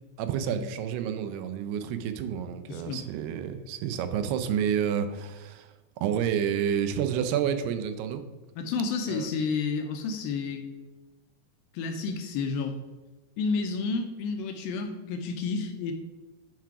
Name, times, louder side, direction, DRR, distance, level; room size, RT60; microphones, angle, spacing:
voice 1, 0.2-5.7 6.0-8.2 9.1-9.3, right 8 dB, 85° right, 9 dB, 2.7 m, -29 dB
voice 2, 2.7-3.0 8.6-10.7 11.7-12.8 13.4-15.9, left 4 dB, 75° left, 5 dB, 2.3 m, -30 dB
9.4 x 4.8 x 4.8 m, 1.2 s
omnidirectional pair, 4.6 m